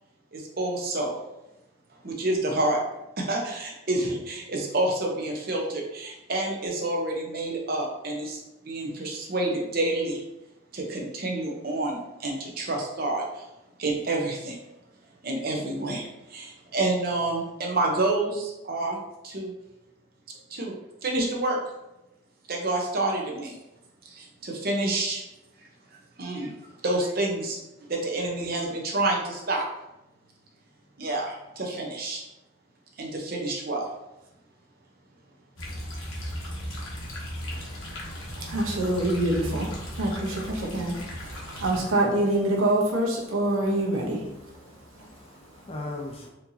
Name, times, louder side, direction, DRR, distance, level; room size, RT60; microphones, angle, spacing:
voice 1, 0.3-1.1 2.0-2.8 3.2-10.2 10.7-13.4 13.8-14.6 15.2-19.0 19.2-19.5 20.5-20.8 21.0-21.6 22.5-23.6 24.0-25.2 26.2-26.5 26.8-27.6 27.9-29.6 31.0-32.2 33.0-33.9, right 2 dB, 45° right, 0 dB, 0.7 m, -28 dB
sound 1, 35.6-41.8, equal, 70° left, 1.0 m, -36 dB
voice 2, 38.3-44.3, right 1 dB, 80° right, -1 dB, 0.9 m, -26 dB
voice 3, 43.9-46.3, left 2 dB, 30° left, 1 dB, 0.5 m, -40 dB
4.4 x 2.8 x 2.7 m, 0.93 s
head